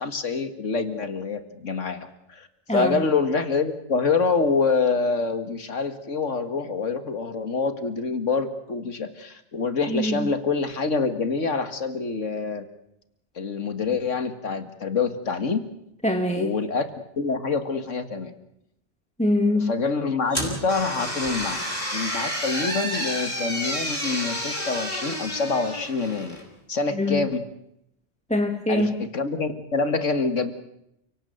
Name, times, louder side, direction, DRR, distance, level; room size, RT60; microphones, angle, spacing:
voice 1, 0.0-12.7 13.4-15.6 16.3-18.3 19.5-21.6 21.9-26.4 26.7-27.4 28.7-30.5, left 4 dB, 85° left, 10 dB, 2.2 m, -26 dB
voice 2, 2.7-3.0 9.9-10.3 16.0-16.5 19.2-19.7 27.0-27.3 28.3-28.9, left 1 dB, 5° left, 5 dB, 1.6 m, -23 dB
sound 1, 20.3-26.5, equal, 35° left, 6.4 m, -30 dB
30.0 x 18.0 x 7.9 m, 0.81 s
omnidirectional pair, 1.3 m